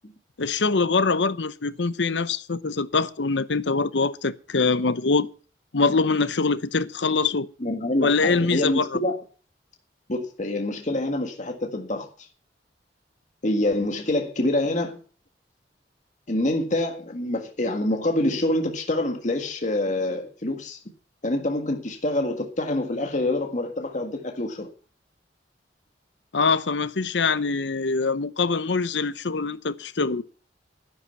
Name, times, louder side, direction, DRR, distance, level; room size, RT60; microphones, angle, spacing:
voice 1, 0.4-5.3 5.7-7.5 8.0-8.9 26.3-30.2, left 4 dB, 85° left, 0.8 m, -23 dB
voice 2, 7.6-9.1 10.1-12.3 13.4-15.0 16.3-20.8 21.2-24.7, left 1 dB, 45° left, 1.7 m, -26 dB
11.5 x 11.0 x 5.7 m
head